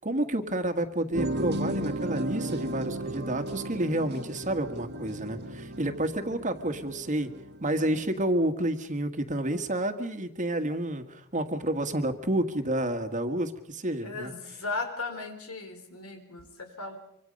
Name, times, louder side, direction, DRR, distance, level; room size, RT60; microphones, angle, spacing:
voice 1, 0.0-7.3 7.6-14.3, right 1 dB, 35° right, 8 dB, 1.7 m, -29 dB
sound 1, 1.1-8.2, right 1 dB, 50° right, 1.7 m, -35 dB
voice 2, 14.0-17.0, left 3 dB, 85° left, 6 dB, 4.4 m, -36 dB
25.5 x 25.0 x 5.3 m, 0.71 s
head